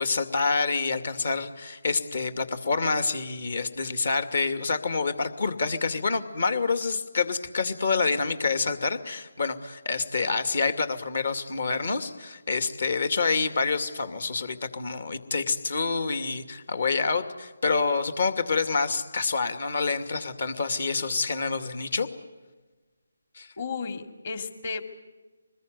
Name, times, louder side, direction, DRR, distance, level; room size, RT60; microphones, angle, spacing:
voice 1, 0.0-22.1 23.4-23.5, left 4 dB, 60° left, 10 dB, 2.5 m, -27 dB
voice 2, 23.6-24.8, left 5 dB, 45° left, 8 dB, 2.5 m, -33 dB
25.5 x 21.0 x 9.4 m, 1.2 s
figure-of-eight pair, 155°, 0 cm